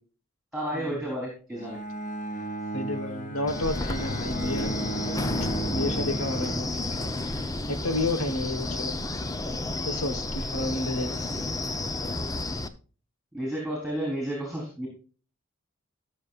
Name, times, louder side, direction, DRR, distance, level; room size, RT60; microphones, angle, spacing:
voice 1, 0.5-1.8 13.3-14.9, right 1 dB, ahead, -2 dB, 4.0 m, -31 dB
Bowed string instrument, 1.6-7.4, right 2 dB, 40° left, 1.6 m, -35 dB
voice 2, 2.7-4.8 5.1-6.8 7.2-9.0 9.8-11.3, left 2 dB, 90° left, 9 dB, 1.4 m, -31 dB
Wind, 3.5-12.7, left 2 dB, 15° left, 0.8 m, -31 dB
18.0 x 6.8 x 2.5 m, 0.38 s
head